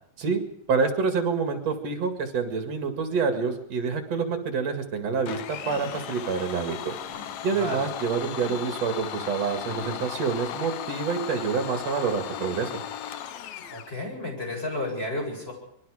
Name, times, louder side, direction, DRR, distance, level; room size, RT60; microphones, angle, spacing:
voice 1, 0.7-6.9 7.4-12.7, right 5 dB, 60° right, 5 dB, 3.2 m, -27 dB
Domestic sounds home sounds, 5.3-13.9, left 10 dB, 70° left, 2.2 m, -36 dB
sound 1, 5.6-6.2 7.0-7.6 8.3-8.9 9.7-10.3, left 4 dB, 45° left, 8.2 m, -47 dB
voice 2, 7.5-7.9 13.6-15.5, left 1 dB, 20° left, 0 dB, 8.3 m, -32 dB
27.0 x 22.0 x 5.0 m, 0.76 s
omnidirectional pair, 3.4 m